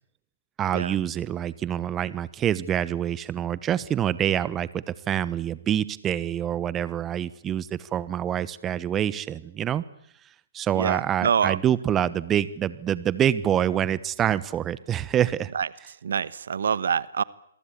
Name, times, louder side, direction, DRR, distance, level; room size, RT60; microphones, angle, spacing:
voice 1, 0.6-9.8 10.5-15.5, right 10 dB, 20° right, 18 dB, 1.2 m, -26 dB
voice 2, 10.7-11.6 15.5-15.7 16.0-17.2, right 7 dB, 65° right, 19 dB, 1.2 m, -25 dB
28.0 x 23.0 x 8.6 m, 0.70 s
figure-of-eight pair, 130°, 0 cm